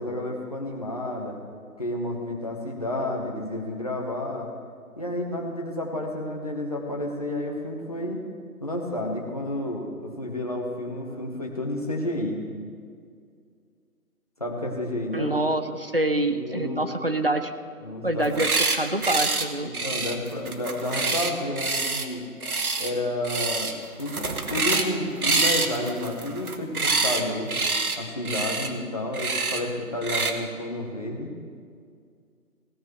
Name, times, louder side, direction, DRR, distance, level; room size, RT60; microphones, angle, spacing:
voice 1, 0.0-1.4 1.8-4.5 5.0-8.2 8.6-12.4 14.4-15.4 16.3-16.8 17.8-18.4 19.6-22.2 22.8-27.5 28.0-31.3, left 1 dB, 25° left, 0 dB, 1.2 m, -31 dB
voice 2, 15.1-17.5 18.0-19.7, right 1 dB, 40° right, 8 dB, 0.6 m, -26 dB
sound 1, 18.2-18.8 19.0-19.5 19.7-22.1 22.4-22.9 23.2-23.7 24.0-24.9 25.2-27.2 27.5-28.0 28.3-28.7 29.1-29.6 30.0-30.3, right 3 dB, 75° right, 1.3 m, -26 dB
17.0 x 13.5 x 3.2 m, 2.2 s
figure-of-eight pair, 170°, 44 cm